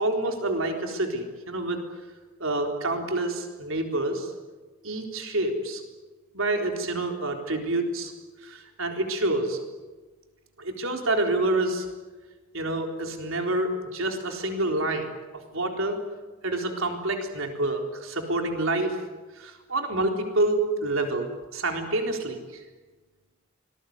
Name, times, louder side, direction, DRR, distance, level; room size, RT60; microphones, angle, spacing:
voice 1, 0.0-1.8 2.4-4.3 4.8-5.8 6.3-8.1 8.4-9.6 10.6-11.9 12.5-15.1 15.5-16.0 16.4-19.0 19.4-21.3 21.5-22.6, right 2 dB, 75° right, 3 dB, 4.0 m, -27 dB
25.5 x 20.5 x 9.6 m, 1.3 s
head